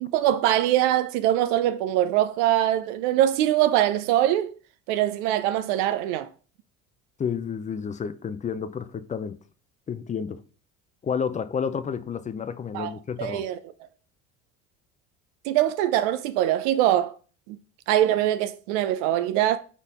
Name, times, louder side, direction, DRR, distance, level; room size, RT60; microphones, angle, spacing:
voice 1, 0.0-4.6 4.9-6.3 12.7-12.9 13.2-13.6 15.5-17.1 17.5-17.6 17.9-19.6, right 12 dB, 75° right, 0.5 m, -23 dB
voice 2, 7.2-9.4 9.9-10.4 11.0-13.4, left 6 dB, 20° left, 0.4 m, -30 dB
4.0 x 3.7 x 3.6 m
hypercardioid pair, 80°, 36 cm